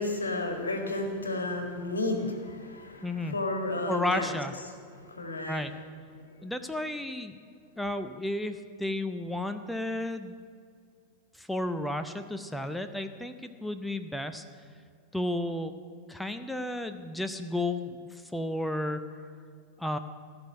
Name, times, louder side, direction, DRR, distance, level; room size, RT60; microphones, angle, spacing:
voice 1, 0.0-4.3 4.9-5.6, left 2 dB, 75° left, 4 dB, 1.8 m, -32 dB
voice 2, 3.0-3.4 3.9-4.5 5.5-5.7 6.4-7.3 7.8-10.3 11.3-14.4 15.1-15.7 16.1-19.1 19.8-20.0, left 1 dB, 5° left, 9 dB, 0.6 m, -32 dB
15.5 x 6.3 x 9.6 m, 2.1 s
figure-of-eight pair, 90°, 0 cm